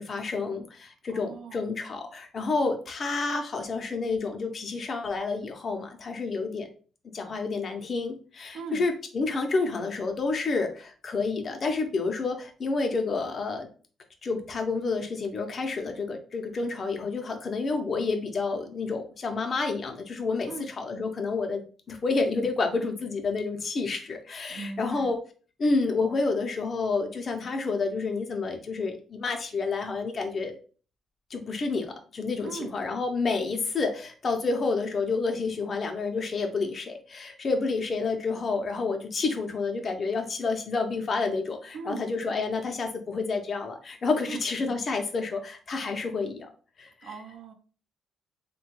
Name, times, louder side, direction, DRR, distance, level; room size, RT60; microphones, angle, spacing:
voice 1, 0.0-6.7 7.1-13.7 14.2-25.2 25.6-30.6 31.3-46.5 46.8-47.1, left 4 dB, 45° left, 4 dB, 0.6 m, -29 dB
voice 2, 1.1-1.7 8.5-8.8 20.5-20.7 24.5-25.1 32.4-32.8 41.7-42.1 44.3-44.4 47.0-47.5, right 4 dB, 75° right, 4 dB, 0.6 m, -39 dB
3.1 x 2.2 x 3.0 m, 0.39 s
cardioid pair, 90°, 0 cm